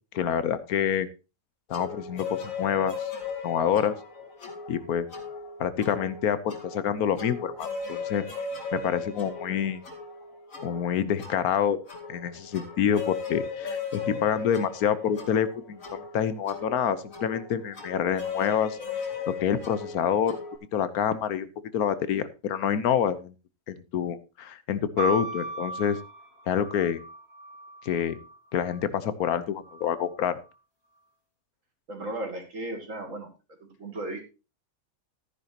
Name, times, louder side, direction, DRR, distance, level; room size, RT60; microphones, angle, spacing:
voice 1, 0.1-1.1 1.7-3.1 3.4-3.9 4.7-5.1 5.6-8.2 8.7-9.8 10.6-11.8 12.1-20.4 20.7-21.5 21.7-23.3 23.7-26.0 26.5-27.0 27.8-28.2 28.5-30.3, left 8 dB, 85° left, 14 dB, 1.4 m, -27 dB
sound 1, 1.7-20.6, left 5 dB, 65° left, 2.7 m, -37 dB
sound 2, 25.0-28.8 29.6-30.4, right 2 dB, 45° right, 3.1 m, -36 dB
voice 2, 31.9-33.3 33.6-34.3, right 1 dB, 60° right, 3 dB, 2.8 m, -35 dB
14.0 x 9.9 x 2.9 m, 0.30 s
omnidirectional pair, 1.5 m